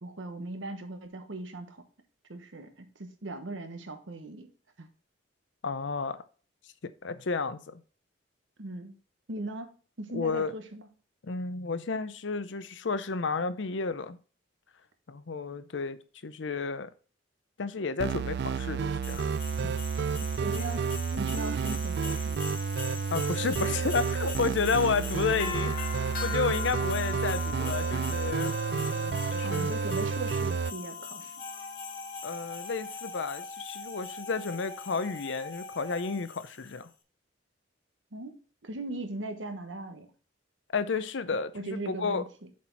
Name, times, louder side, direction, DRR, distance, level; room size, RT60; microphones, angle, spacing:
voice 1, 0.0-1.8 2.3-4.5 4.8-4.9 8.6-8.9 9.3-10.9 20.4-22.6 23.4-23.8 29.4-31.3 38.1-40.1 41.5-42.5, right 2 dB, 85° right, 1.2 m, -39 dB
voice 2, 5.6-6.2 7.0-7.8 10.1-10.5 11.2-14.2 15.1-16.0 16.2-16.9 17.6-20.1 23.1-29.7 32.2-36.9 40.7-42.2, left 4 dB, 70° left, 0.6 m, -32 dB
sound 1, 18.0-30.7, right 6 dB, 60° right, 0.3 m, -30 dB
Christmas Bells, 19.0-36.7, left 7 dB, 55° left, 1.8 m, -41 dB
Wind instrument woodwind instrument, 31.4-36.3, left 2 dB, 20° left, 1.2 m, -43 dB
7.3 x 4.4 x 4.5 m
head